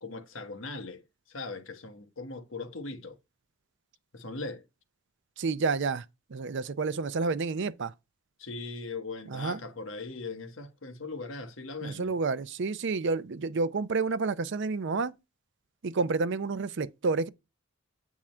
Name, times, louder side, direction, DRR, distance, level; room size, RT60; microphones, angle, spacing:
voice 1, 0.0-3.2 4.1-4.6 8.4-12.2, left 3 dB, 70° left, 1.2 m, -40 dB
voice 2, 5.4-7.9 9.3-9.6 11.8-15.1 15.8-17.3, right 4 dB, 60° right, 0.5 m, -30 dB
8.8 x 3.6 x 4.3 m
head